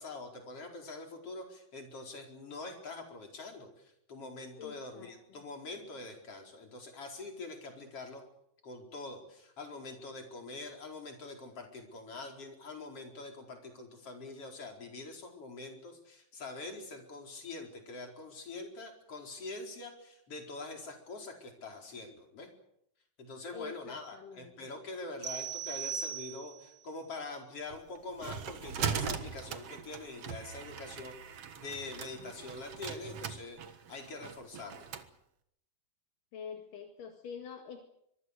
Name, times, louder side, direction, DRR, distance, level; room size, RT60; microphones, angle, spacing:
voice 1, 0.0-8.2 8.6-22.5 23.2-34.9, left 3 dB, 40° left, 3 dB, 5.5 m, -44 dB
voice 2, 4.6-5.4 23.5-24.7 36.3-37.8, left 7 dB, 70° left, 4 dB, 3.6 m, -46 dB
sound 1, 25.2-26.8, right 7 dB, 35° right, 3.8 m, -38 dB
sound 2, 27.7-35.1, right 7 dB, 55° right, 2.1 m, -40 dB
24.5 x 23.5 x 6.7 m, 0.76 s
omnidirectional pair, 3.9 m